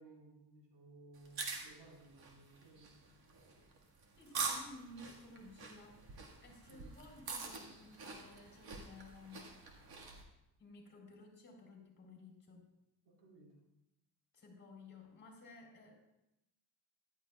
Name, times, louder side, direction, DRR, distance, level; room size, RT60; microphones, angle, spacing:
voice 1, 0.0-2.9 6.7-6.9 13.0-13.5, right 3 dB, 85° right, -3 dB, 4.4 m, -59 dB
sound 1, 1.2-10.2, right 4 dB, 60° right, 1.8 m, -45 dB
voice 2, 4.2-6.0 6.4-9.4 10.6-12.7 14.3-15.9, left 2 dB, 25° left, 1 dB, 3.7 m, -55 dB
14.5 x 12.0 x 2.4 m, 0.88 s
cardioid pair, 125°, 42 cm